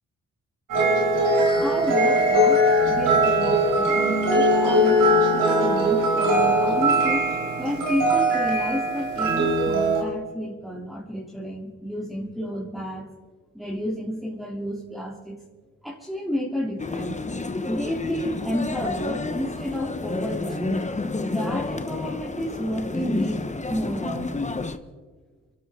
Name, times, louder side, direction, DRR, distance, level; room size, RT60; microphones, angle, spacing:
sound 1, 0.7-10.0, right 1 dB, 90° right, 4.4 m, -20 dB
voice 1, 1.6-5.0 5.3-7.2 7.6-13.1 13.5-15.4 15.8-17.2 17.7-20.8 21.2-24.3, equal, ahead, -6 dB, 3.2 m, -31 dB
sound 2, 16.8-24.8, left 3 dB, 25° left, 1.1 m, -30 dB
23.5 x 12.5 x 3.8 m, 1.4 s
supercardioid pair, 55°, 31 cm